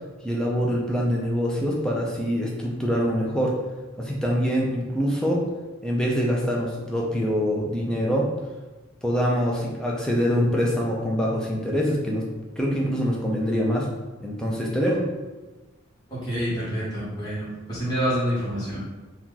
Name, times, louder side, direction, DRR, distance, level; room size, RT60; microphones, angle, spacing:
voice 1, 0.2-3.6 4.0-5.4 5.8-8.3 9.0-12.2 12.6-13.9 14.2-15.0, equal, 5° left, -3 dB, 0.4 m, -24 dB
voice 2, 16.1-18.8, equal, 20° left, -11 dB, 1.3 m, -27 dB
2.8 x 2.3 x 3.8 m, 1.2 s
head